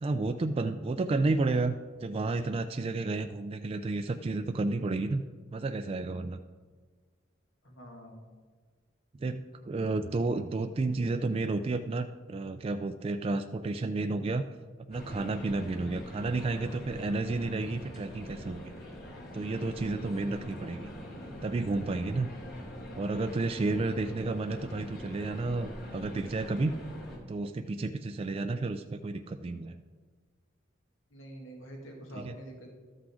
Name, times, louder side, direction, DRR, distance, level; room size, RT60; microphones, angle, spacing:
voice 1, 0.0-5.2 5.5-6.4 9.2-14.4 14.9-18.7 19.3-20.9 21.4-22.3 23.0-26.7 27.3-29.8 32.1-32.4, right 3 dB, 30° right, 7 dB, 0.3 m, -31 dB
voice 2, 7.6-8.2 20.3-20.7 31.1-32.7, right 1 dB, 80° left, 1 dB, 1.9 m, -46 dB
sound 1, 14.9-27.2, equal, 60° left, 3.1 m, -44 dB
12.5 x 6.0 x 4.9 m, 1.5 s
head